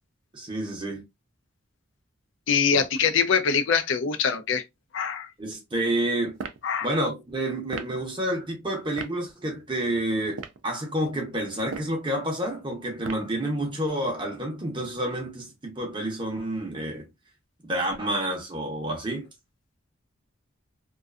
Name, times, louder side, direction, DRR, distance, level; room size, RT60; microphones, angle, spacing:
voice 1, 0.3-1.0 2.7-2.8 5.4-6.4 6.8-17.1 17.7-19.3, right 1 dB, 25° right, 0.6 m, -29 dB
voice 2, 2.5-4.6 4.9-5.3 6.6-6.9, left 6 dB, 65° left, 0.4 m, -23 dB
sound 1, 6.3-6.6 7.7-8.0 9.0-9.2 10.2-10.6 11.6-12.0 13.0-13.4, right 5 dB, 65° right, 0.3 m, -36 dB
2.5 x 2.3 x 2.3 m
head